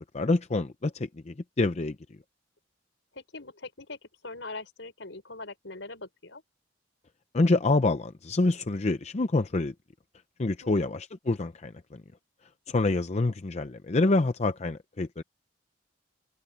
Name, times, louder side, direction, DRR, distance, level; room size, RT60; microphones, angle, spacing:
voice 1, 0.1-2.0 7.3-9.7 10.4-11.7 12.7-15.2, left 2 dB, 35° left, 0.6 m, -26 dB
voice 2, 3.1-6.4 10.6-11.0, left 3 dB, 70° left, 5.9 m, -42 dB
head